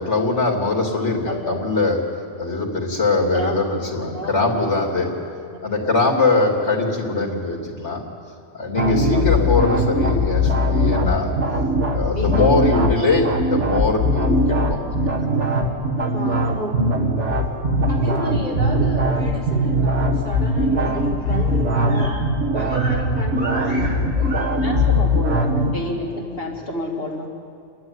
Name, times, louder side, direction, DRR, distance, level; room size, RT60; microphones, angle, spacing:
voice 1, 0.0-2.0 2.4-5.1 5.6-8.0 8.5-11.3 11.9-14.8, left 3 dB, 75° left, 0 dB, 3.1 m, -21 dB
voice 2, 1.2-1.6 3.3-3.6 4.1-4.7 5.5-6.0 12.1-12.6 17.6-17.9 24.6-27.3, equal, 55° left, -2 dB, 2.8 m, -29 dB
sound 1, 8.8-25.8, equal, 80° right, 2.2 m, -20 dB
voice 3, 16.1-16.7 17.9-22.2 22.5-24.9, right 1 dB, 40° right, -4 dB, 5.2 m, -31 dB
29.5 x 12.0 x 9.6 m, 2.4 s
omnidirectional pair, 1.2 m